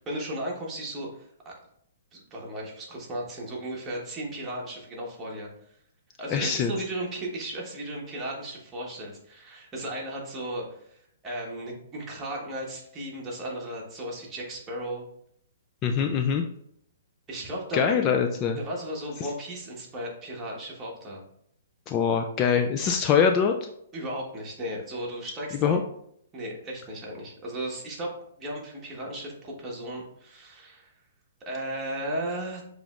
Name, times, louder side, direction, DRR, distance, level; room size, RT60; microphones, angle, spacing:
voice 1, 0.0-1.5 2.1-5.5 6.2-15.1 17.3-17.8 18.6-21.2 23.9-25.8 26.3-28.1 28.4-30.9 31.4-32.6, right 1 dB, 15° right, -3 dB, 1.3 m, -35 dB
voice 2, 6.3-6.7 15.8-16.4 17.7-18.6 21.9-23.5 25.6-25.8, left 7 dB, 25° left, 4 dB, 0.4 m, -23 dB
6.7 x 3.1 x 2.5 m, 0.71 s
hypercardioid pair, 145°, 0 cm